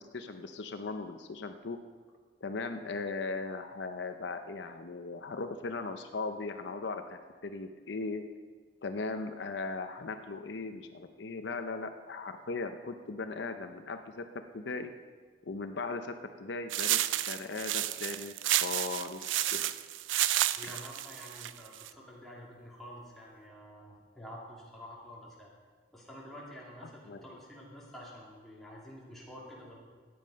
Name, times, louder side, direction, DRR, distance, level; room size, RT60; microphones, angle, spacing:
voice 1, 0.0-1.8 2.4-8.2 8.8-14.3 14.5-14.9 15.5-17.0 17.3-19.7 20.6-20.8 26.8-27.2, left 3 dB, 70° left, 7 dB, 0.6 m, -38 dB
sound 1, 16.7-21.9, right 13 dB, 90° right, 0.4 m, -31 dB
voice 2, 20.5-25.5 25.9-29.8, equal, ahead, -6 dB, 2.8 m, -48 dB
14.5 x 9.5 x 5.2 m, 1.5 s
head